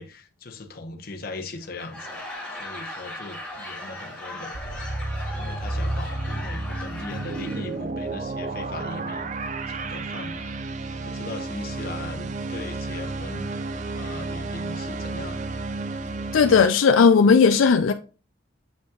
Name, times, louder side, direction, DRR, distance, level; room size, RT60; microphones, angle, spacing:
voice 1, 0.0-2.2 2.5-4.8 5.3-9.3 9.7-10.5 10.9-13.5 13.9-15.4, left 2 dB, 50° left, 0.9 m, -39 dB
Laughter / Crowd, 1.6-7.8, left 1 dB, 5° left, 2.2 m, -38 dB
sound 1, 4.5-16.7, right 2 dB, 35° right, 0.4 m, -31 dB
voice 2, 16.3-17.9, left 5 dB, 80° left, 0.4 m, -16 dB
8.0 x 5.2 x 2.4 m
head